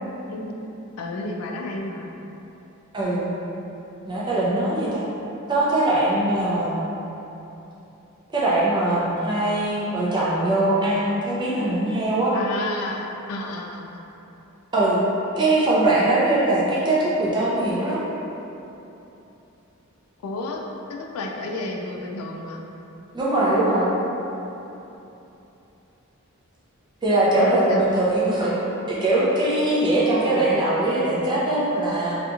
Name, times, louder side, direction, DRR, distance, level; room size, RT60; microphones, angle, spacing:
voice 1, 1.0-2.1 12.3-14.0 20.2-20.6 20.9-22.6 27.4-27.8, left 2 dB, 80° left, 1 dB, 0.3 m, -31 dB
voice 2, 2.9-3.4 4.0-5.0 5.5-6.8 8.3-12.3 14.7-15.0 15.4-18.1 23.1-23.9 27.0-28.5 28.9-32.2, right 2 dB, 20° right, -7 dB, 0.4 m, -21 dB
2.8 x 2.4 x 2.4 m, 3.0 s
head